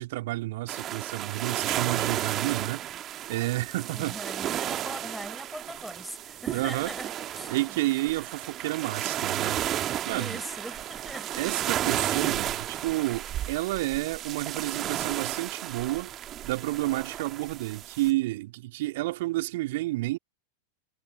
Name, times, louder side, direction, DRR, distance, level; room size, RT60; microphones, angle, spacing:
voice 1, 0.0-2.8 3.3-4.2 6.5-6.9 7.5-9.6 10.0-10.4 11.4-16.1 16.4-20.2, right 18 dB, 50° right, 2.4 m, -30 dB
sound 1, 0.7-18.1, right 12 dB, 30° right, 1.8 m, -33 dB
voice 2, 3.9-7.9 10.0-11.4, equal, ahead, 6.7 m, -41 dB
figure-of-eight pair, 90°, 0 cm